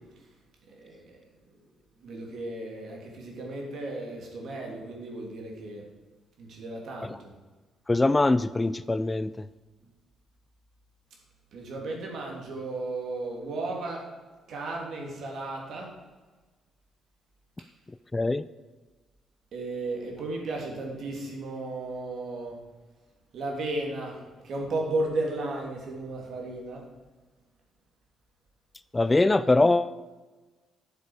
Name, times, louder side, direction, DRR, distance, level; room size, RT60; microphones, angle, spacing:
voice 1, 0.7-1.2 2.0-5.8 6.4-7.3 11.5-14.0 14.5-15.9 19.5-22.6 23.3-26.8, right 2 dB, 65° right, -1 dB, 2.7 m, -34 dB
voice 2, 7.9-9.3 18.1-18.4 28.9-30.0, left 2 dB, 20° left, 15 dB, 0.3 m, -22 dB
11.5 x 6.8 x 4.8 m, 1.3 s
cardioid pair, 90°, 0 cm